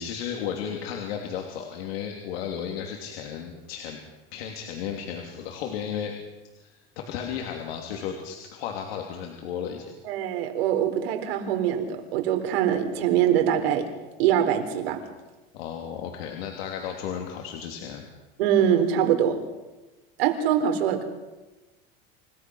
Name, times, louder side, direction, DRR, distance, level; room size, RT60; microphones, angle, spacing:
voice 1, 0.0-4.0 4.3-6.2 6.6-9.8 15.5-18.0, left 8 dB, 90° left, 1 dB, 3.2 m, -34 dB
voice 2, 10.0-13.9 14.2-15.0 18.4-19.4 20.2-21.0, right 9 dB, 85° right, 6 dB, 4.2 m, -23 dB
28.5 x 17.5 x 6.4 m, 1.1 s
supercardioid pair, 175°, 30 cm